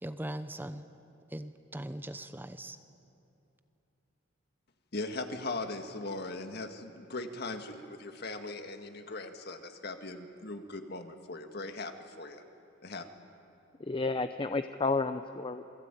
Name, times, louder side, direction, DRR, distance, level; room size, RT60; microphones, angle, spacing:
voice 1, 0.0-0.9 1.3-2.8, right 1 dB, 10° right, 10 dB, 0.7 m, -40 dB
voice 2, 4.9-12.4 12.8-13.1, left 2 dB, 55° left, 6 dB, 1.9 m, -39 dB
voice 3, 13.9-15.7, left 3 dB, 25° left, 9 dB, 0.6 m, -31 dB
27.5 x 21.5 x 9.1 m, 2.8 s
head